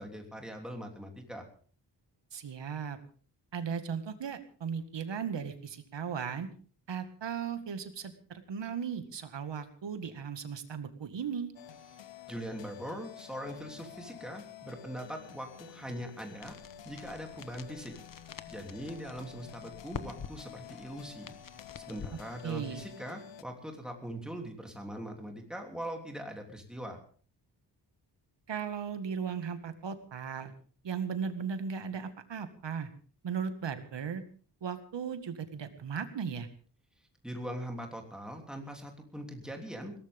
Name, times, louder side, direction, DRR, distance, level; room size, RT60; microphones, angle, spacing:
voice 1, 0.0-1.4 12.3-16.5 16.8-17.9 18.5-21.3 21.8-27.0 37.2-39.9, equal, ahead, 2 dB, 3.2 m, -41 dB
voice 2, 2.3-3.0 3.5-6.5 6.9-11.5 22.4-22.8 28.5-30.5 30.8-32.9 33.2-34.2 34.6-36.5, right 7 dB, 80° right, 9 dB, 2.0 m, -37 dB
sound 1, 11.5-23.4, left 10 dB, 90° left, 1.0 m, -50 dB
sound 2, 16.4-23.0, left 6 dB, 50° left, 1.1 m, -48 dB
21.5 x 18.0 x 3.7 m, 0.43 s
wide cardioid pair, 180°, 43 cm